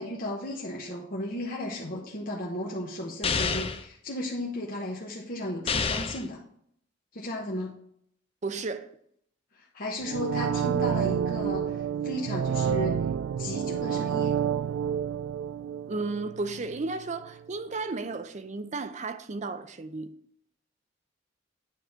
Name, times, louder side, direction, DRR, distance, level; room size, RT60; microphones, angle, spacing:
voice 1, 0.0-6.4 7.1-7.7 9.6-11.7 12.0-13.0 13.4-14.4, left 1 dB, 50° left, 1.1 m, -34 dB
sound 1, 3.2-3.8 5.7-6.3, left 5 dB, 30° left, 0.5 m, -28 dB
voice 2, 8.4-8.9 15.9-20.1, right 3 dB, 40° right, 0.5 m, -33 dB
sound 2, 10.0-16.9 17.2-17.3, right 8 dB, 90° right, 0.3 m, -29 dB
9.3 x 4.1 x 4.5 m
head